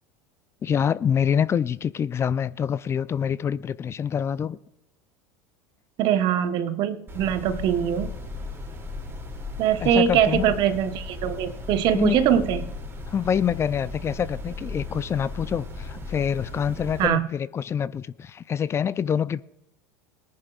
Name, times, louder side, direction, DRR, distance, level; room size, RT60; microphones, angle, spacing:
voice 1, 0.6-4.6 9.8-10.5 11.9-12.2 13.1-19.4, left 8 dB, 30° left, 0.4 m, -26 dB
voice 2, 6.0-8.1 9.6-12.6 17.0-17.3, right 9 dB, 50° right, 1.2 m, -22 dB
sound 1, 7.1-17.1, left 2 dB, 25° right, 2.8 m, -36 dB
21.5 x 10.5 x 2.5 m
hypercardioid pair, 80°, 9 cm